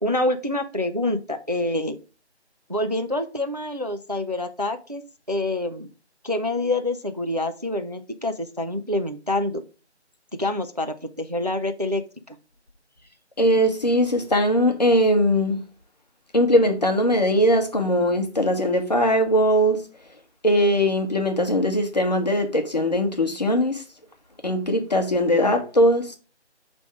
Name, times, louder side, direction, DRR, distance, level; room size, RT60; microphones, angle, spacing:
voice 1, 0.0-2.0 2.7-5.0 5.3-5.9 6.2-9.6 10.3-12.0 12.3-12.4, left 2 dB, 35° right, 0.5 m, -26 dB
voice 2, 13.4-15.6 16.3-19.8 20.4-23.8 24.4-26.2, equal, 35° left, 1.0 m, -20 dB
8.1 x 3.5 x 5.0 m
figure-of-eight pair, 170°, 34 cm